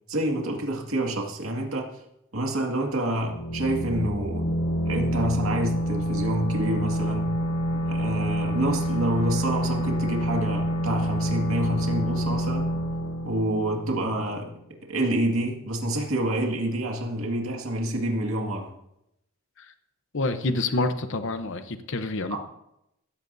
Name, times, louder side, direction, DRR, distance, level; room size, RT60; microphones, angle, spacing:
voice 1, 0.1-1.9 2.3-4.5 4.9-7.3 7.8-12.7 13.2-14.5 14.9-18.7 22.3-22.4, right 1 dB, 65° right, 1 dB, 2.1 m, -28 dB
sound 1, 3.1-14.6, equal, 80° left, 5.0 m, -27 dB
voice 2, 20.1-22.4, left 2 dB, 60° left, 8 dB, 0.9 m, -28 dB
16.0 x 14.5 x 2.7 m, 0.82 s
head